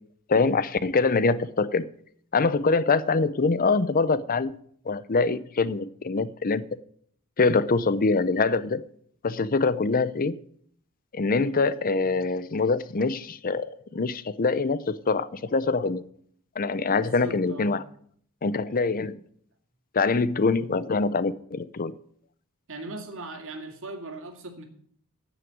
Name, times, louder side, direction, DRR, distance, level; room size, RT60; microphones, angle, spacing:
voice 1, 0.3-1.9 2.3-4.5 4.9-6.6 7.4-8.8 9.2-10.4 11.1-16.0 16.6-17.8 18.4-19.2 19.9-21.9, left 4 dB, 40° left, 0.6 m, -24 dB
voice 2, 17.0-17.8 19.0-19.2 22.7-24.7, right 2 dB, 60° right, 2.4 m, -39 dB
9.6 x 7.8 x 9.3 m
head